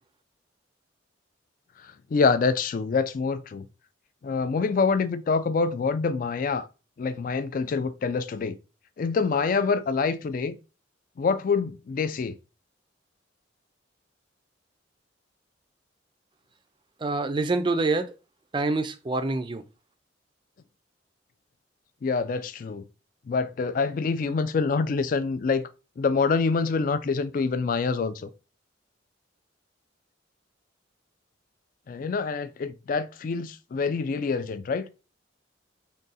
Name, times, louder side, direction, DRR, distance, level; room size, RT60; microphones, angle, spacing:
voice 1, 2.1-3.7 4.2-6.7 7.0-8.5 9.0-10.6 11.2-12.3 22.0-22.8 23.3-25.6 26.0-28.3 31.9-34.9, left 4 dB, 45° left, 0.3 m, -26 dB
voice 2, 17.0-18.1 18.5-19.6, right 3 dB, 25° right, 0.4 m, -26 dB
3.7 x 2.2 x 4.0 m
head